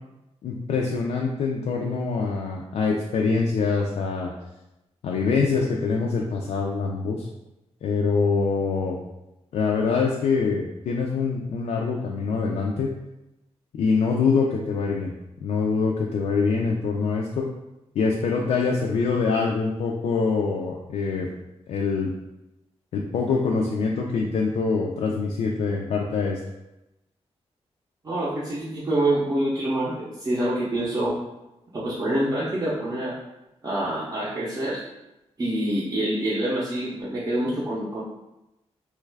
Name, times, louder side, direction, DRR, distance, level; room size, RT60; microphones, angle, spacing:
voice 1, 0.4-4.3 5.0-7.3 7.8-9.0 9.5-12.9 13.8-15.1 15.4-17.5 18.0-21.3 21.7-22.1 22.9-26.4, left 4 dB, 75° left, -1 dB, 0.4 m, -24 dB
voice 2, 28.0-31.2 31.7-33.2 33.6-34.8 35.4-38.0, right 1 dB, 30° right, -8 dB, 0.5 m, -26 dB
3.1 x 2.3 x 3.3 m, 0.94 s
wide cardioid pair, 155°, 11 cm